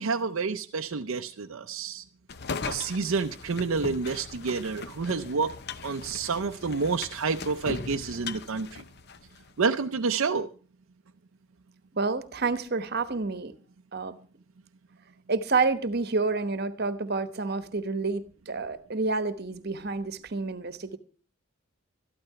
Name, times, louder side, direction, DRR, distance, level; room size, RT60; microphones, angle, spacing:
voice 1, 0.0-2.0 2.7-5.5 5.8-8.8 9.6-10.5, right 4 dB, 70° right, 0.6 m, -29 dB
sound 1, 2.3-9.5, left 4 dB, 50° left, 0.7 m, -39 dB
voice 2, 12.0-13.5 13.9-14.2 15.3-21.0, right 3 dB, 50° right, 1.1 m, -29 dB
13.0 x 12.0 x 5.7 m
head